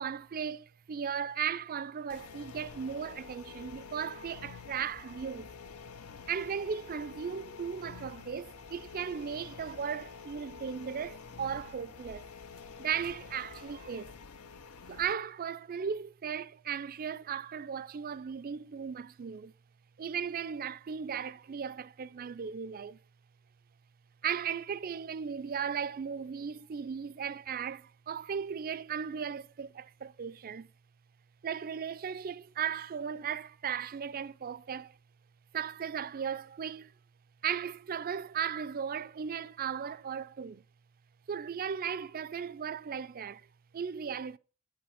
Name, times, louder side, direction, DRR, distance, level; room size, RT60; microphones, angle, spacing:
voice 1, 0.0-5.5 6.3-12.3 12.8-14.1 14.9-19.5 20.0-23.0 24.2-30.7 31.4-34.9 35.5-36.9 37.4-40.6 41.3-43.5 43.7-44.4, right 7 dB, 40° right, 0.4 m, -36 dB
sound 1, 2.1-15.1, left 5 dB, 90° left, 0.7 m, -48 dB
8.5 x 7.6 x 5.7 m
head